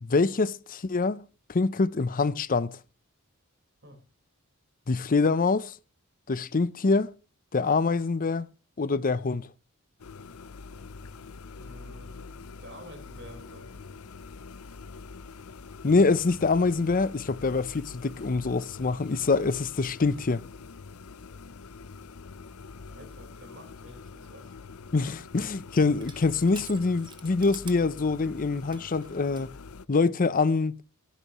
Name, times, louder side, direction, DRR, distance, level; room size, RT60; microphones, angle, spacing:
voice 1, 0.0-2.8 4.9-5.7 6.3-7.1 7.5-8.5 8.8-9.5 15.8-20.4 24.9-29.5 29.9-30.8, left 3 dB, 40° left, 0.6 m, -25 dB
sound 1, 10.0-29.9, left 4 dB, 75° left, 0.6 m, -45 dB
voice 2, 11.6-14.0 22.9-24.5, equal, 60° right, 4.4 m, -50 dB
Crushing, 25.9-29.5, right 5 dB, 20° right, 1.5 m, -50 dB
16.0 x 14.5 x 3.0 m
head